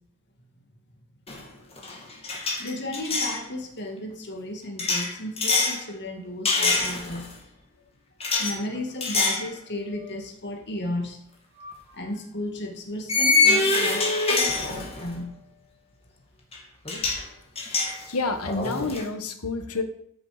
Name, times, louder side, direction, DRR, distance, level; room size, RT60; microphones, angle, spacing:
sound 1, 1.3-1.5 1.8-3.4 4.8-5.8 6.5-7.3 8.2-8.5 9.0-9.5 9.9-10.1 11.6-11.7 13.1-15.2 16.5-16.6 16.9-17.2 17.6-19.0, left 3 dB, 25° left, 2.3 m, -24 dB
voice 1, 2.6-7.4 8.4-11.2 11.9-15.3, left 1 dB, 50° left, 3 dB, 1.9 m, -34 dB
voice 2, 18.1-19.8, left 3 dB, 80° left, 7 dB, 1.4 m, -29 dB
13.0 x 6.8 x 5.0 m, 0.70 s
head